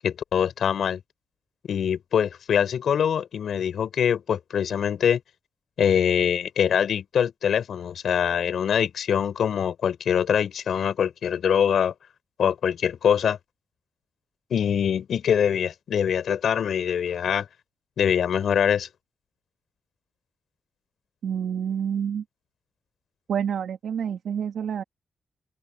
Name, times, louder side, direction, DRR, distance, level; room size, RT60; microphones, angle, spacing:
voice 1, 0.0-1.0 1.7-5.2 5.8-11.9 12.4-13.4 14.5-17.5 18.0-18.9, left 8 dB, 80° left, 5.2 m, -23 dB
voice 2, 21.2-22.2 23.3-24.8, right 8 dB, 85° right, 2.3 m, -28 dB
open air
wide cardioid pair, 150°, 0 cm